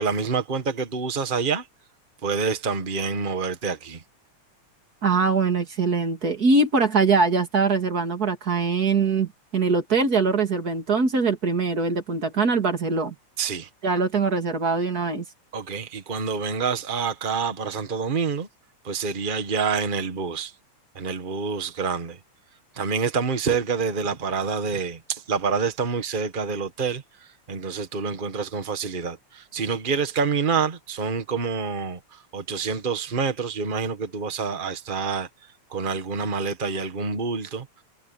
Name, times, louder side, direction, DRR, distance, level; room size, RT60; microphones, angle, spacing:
voice 1, 0.0-1.7 2.2-4.0 13.4-13.7 15.5-18.5 18.8-20.5 20.9-22.2 22.7-35.3 35.7-37.7, right 5 dB, 55° right, 0.5 m, -27 dB
voice 2, 5.0-13.1 13.8-15.2, right 4 dB, 30° right, 3.0 m, -22 dB
omnidirectional pair, 3.4 m